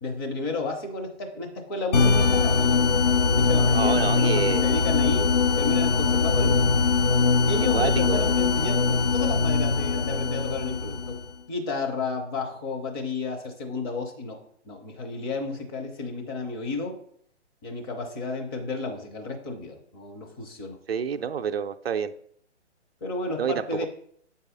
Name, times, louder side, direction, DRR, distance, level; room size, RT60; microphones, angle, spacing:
voice 1, 0.0-2.6 3.3-6.6 7.5-11.1 11.5-14.4 14.6-17.0 17.6-20.8 23.0-23.9, left 3 dB, 20° left, 2 dB, 0.8 m, -32 dB
sound 1, 1.9-11.3, left 4 dB, 40° left, 0.5 m, -22 dB
voice 2, 3.7-4.7 7.7-8.3 20.9-22.1 23.4-23.9, right 7 dB, 60° right, 8 dB, 0.5 m, -28 dB
8.0 x 4.1 x 3.9 m, 0.64 s
figure-of-eight pair, 135°, 35 cm